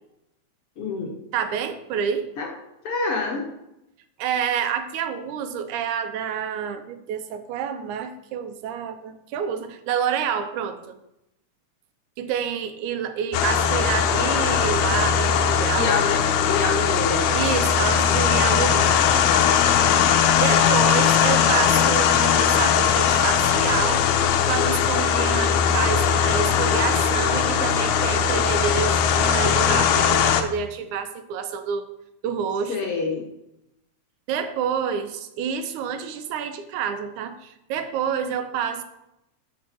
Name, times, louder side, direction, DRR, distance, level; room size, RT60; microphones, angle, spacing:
voice 1, 0.8-1.1 2.4-2.5 2.8-3.4 15.7-16.2 16.4-17.4 32.7-33.2, left 4 dB, 55° left, 1 dB, 2.0 m, -26 dB
voice 2, 1.3-2.3 4.2-11.0 12.2-15.9 17.3-19.3 20.4-31.9 32.2-32.8 34.3-38.8, right 8 dB, 80° right, 9 dB, 2.2 m, -28 dB
sound 1, 13.3-30.4, left 7 dB, 80° left, 2.1 m, -20 dB
13.0 x 5.4 x 4.6 m, 0.86 s
omnidirectional pair, 3.5 m